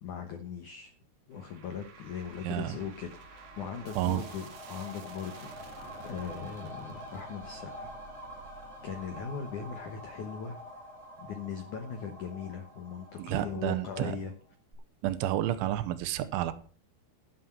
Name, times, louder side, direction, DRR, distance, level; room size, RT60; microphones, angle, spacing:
voice 1, 0.0-0.9 1.3-5.5 6.0-7.9 8.8-10.6 11.2-14.3, left 6 dB, 85° left, 7 dB, 1.7 m, -39 dB
sound 1, 1.3-12.6, right 4 dB, 55° right, 2.0 m, -53 dB
voice 2, 2.4-2.8 4.0-4.2 13.2-14.2 15.0-16.5, right 13 dB, 85° right, 10 dB, 3.2 m, -30 dB
sound 2, 2.9-14.4 14.7-14.8, equal, 10° right, 3.1 m, -47 dB
12.5 x 7.8 x 5.8 m, 0.43 s
omnidirectional pair, 5.5 m